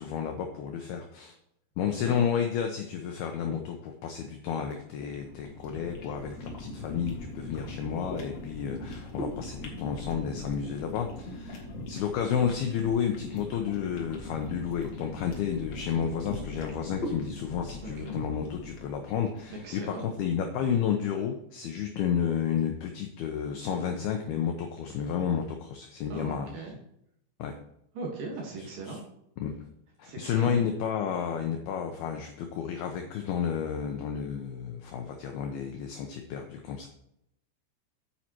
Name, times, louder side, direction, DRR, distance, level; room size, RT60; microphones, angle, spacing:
voice 1, 0.0-1.3 1.8-26.6 27.4-27.6 28.9-29.0 29.4-29.5 30.0-36.9, left 7 dB, 85° left, 4 dB, 2.2 m, -31 dB
sound 1, 4.7-19.9, left 2 dB, 50° left, 2.2 m, -40 dB
voice 2, 17.8-18.2 19.6-20.0 26.1-26.8 27.9-29.0 30.0-30.5, right 3 dB, 60° right, 0 dB, 2.7 m, -39 dB
9.5 x 8.7 x 3.0 m, 0.76 s
omnidirectional pair, 5.5 m